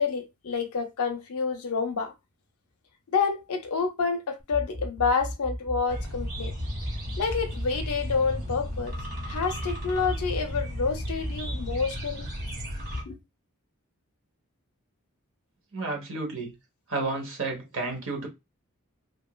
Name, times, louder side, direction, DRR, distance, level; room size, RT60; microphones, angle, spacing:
voice 1, 0.0-2.1 3.1-6.5 7.2-8.9 9.2-12.3 13.1-13.2, left 5 dB, 75° left, 0.6 m, -28 dB
sound 1, 4.4-11.8, left 1 dB, 15° right, 0.6 m, -35 dB
sound 2, 5.9-13.0, equal, 45° right, 1.5 m, -35 dB
voice 2, 15.7-16.5 16.9-18.3, right 3 dB, 60° right, 1.0 m, -31 dB
2.9 x 2.6 x 2.2 m
head